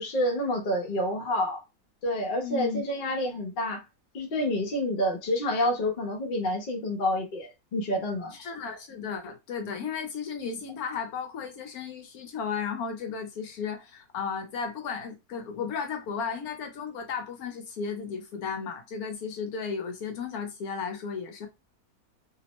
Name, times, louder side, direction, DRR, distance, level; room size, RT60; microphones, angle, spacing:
voice 1, 0.0-1.6 2.0-3.8 4.1-8.4, left 1 dB, 50° left, 0.6 m, -28 dB
voice 2, 2.4-2.8 8.3-21.5, left 6 dB, 70° left, 1.0 m, -34 dB
2.8 x 2.0 x 2.9 m
omnidirectional pair, 1.8 m